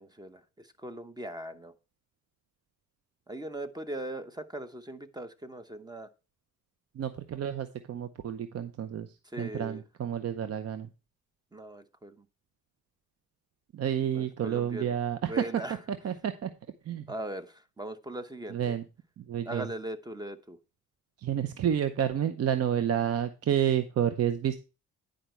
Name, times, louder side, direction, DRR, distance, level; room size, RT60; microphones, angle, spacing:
voice 1, 0.0-1.7 3.3-6.1 9.3-9.8 11.5-12.2 14.1-15.0 15.2-15.8 17.1-18.7 19.4-20.6, right 1 dB, 15° right, 11 dB, 0.9 m, -40 dB
voice 2, 7.0-9.1 9.4-10.9 13.7-15.4 16.0-16.5 16.9-17.0 18.5-18.8 19.2-19.7 21.2-24.6, right 9 dB, 55° right, 10 dB, 0.8 m, -30 dB
10.0 x 5.1 x 4.4 m, 0.31 s
cardioid pair, 90°, 30 cm